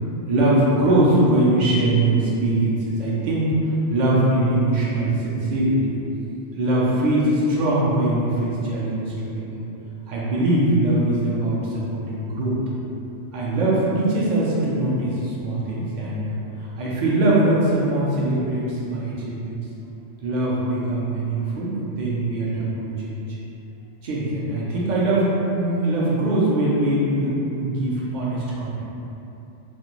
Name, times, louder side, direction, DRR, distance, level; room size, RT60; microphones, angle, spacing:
voice 1, 0.3-3.5 3.9-5.8 6.5-9.6 10.1-12.6 13.3-16.3 16.8-19.6 20.2-23.3 24.0-25.3 25.6-28.8, right 1 dB, 50° right, -6 dB, 0.6 m, -22 dB
2.4 x 2.2 x 3.0 m, 2.9 s
omnidirectional pair, 1.2 m